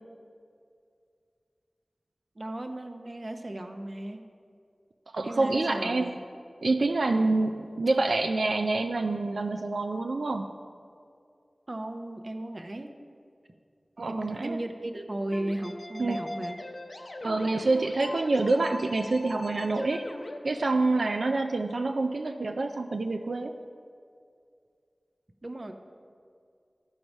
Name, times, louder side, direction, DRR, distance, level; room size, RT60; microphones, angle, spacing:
voice 1, 2.4-4.2 5.2-6.2 11.7-12.9 14.1-16.6 25.4-25.7, right 1 dB, 45° right, 5 dB, 0.7 m, -35 dB
voice 2, 5.1-6.1 6.6-10.5 14.0-14.6 16.0-16.2 17.2-20.1 20.4-23.5, right 3 dB, 90° right, 5 dB, 0.3 m, -27 dB
sound 1, 15.3-20.4, left 1 dB, 70° left, 0.7 m, -40 dB
13.0 x 4.6 x 5.3 m, 2.3 s
wide cardioid pair, 65°, 0 cm